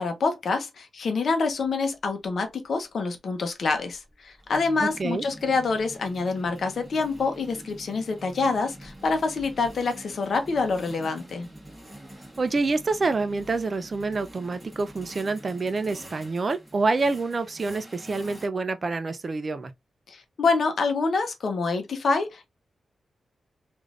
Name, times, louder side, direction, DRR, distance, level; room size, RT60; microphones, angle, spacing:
voice 1, 0.0-11.5 20.1-22.5, left 4 dB, 65° left, 0.7 m, -26 dB
sound 1, 1.6-1.7 2.0-2.3 3.5-18.5, right 1 dB, 10° right, 1.3 m, -45 dB
voice 2, 4.8-5.2 12.4-19.7, right 3 dB, 40° right, 0.4 m, -27 dB
3.2 x 2.5 x 2.4 m
cardioid pair, 90°, 0 cm